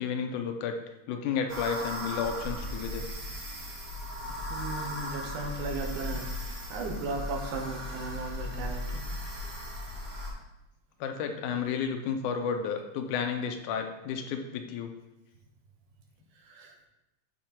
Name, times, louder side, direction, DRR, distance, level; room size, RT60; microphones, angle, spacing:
voice 1, 0.0-3.1 11.0-14.9, left 6 dB, 85° left, 5 dB, 2.2 m, -32 dB
sound 1, 1.5-10.3, left 1 dB, 40° right, 2.0 m, -37 dB
voice 2, 4.5-6.4 6.7-9.0 16.5-16.9, right 3 dB, 80° right, 2 dB, 2.6 m, -36 dB
7.8 x 4.4 x 4.4 m, 0.93 s
omnidirectional pair, 3.5 m